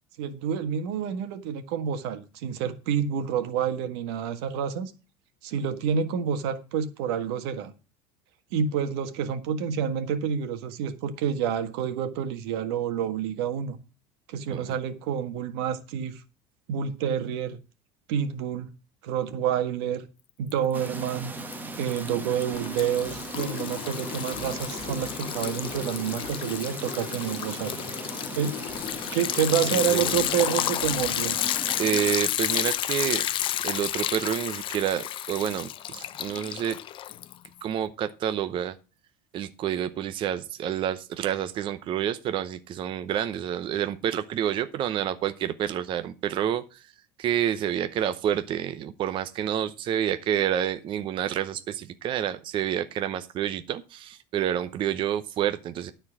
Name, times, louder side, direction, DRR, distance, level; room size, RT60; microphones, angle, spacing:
voice 1, 0.2-4.9 5.4-7.7 8.5-13.8 14.3-16.2 16.7-17.6 18.1-18.7 19.0-20.0 20.4-21.3 21.7-27.8 28.3-28.6 29.1-31.4, right 8 dB, 85° right, 1.6 m, -28 dB
Liquid, 20.5-21.1 21.4-37.6, left 12 dB, 40° left, 0.6 m, -31 dB
sound 1, 20.7-32.2, right 3 dB, 15° right, 1.3 m, -38 dB
voice 2, 29.7-30.1 31.8-33.2 33.6-36.8 37.6-38.7 39.3-46.8 47.2-55.9, right 10 dB, 40° right, 0.8 m, -28 dB
12.5 x 4.4 x 7.4 m
cardioid pair, 140°, 13 cm